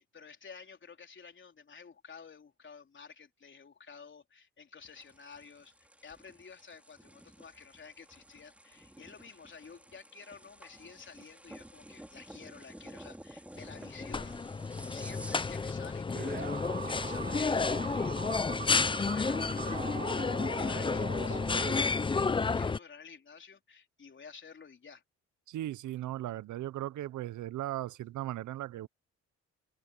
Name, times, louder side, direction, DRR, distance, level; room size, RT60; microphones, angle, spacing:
voice 1, 0.0-14.4 14.9-25.0, left 5 dB, 40° left, 4.1 m, -52 dB
sound 1, 4.8-15.8, right 1 dB, 5° right, 4.2 m, -52 dB
sound 2, 13.6-22.8, left 4 dB, 15° left, 0.5 m, -31 dB
sound 3, 16.1-22.2, right 7 dB, 30° right, 0.6 m, -42 dB
voice 2, 25.5-28.9, right 14 dB, 75° right, 0.9 m, -37 dB
cardioid pair, 90°, 30 cm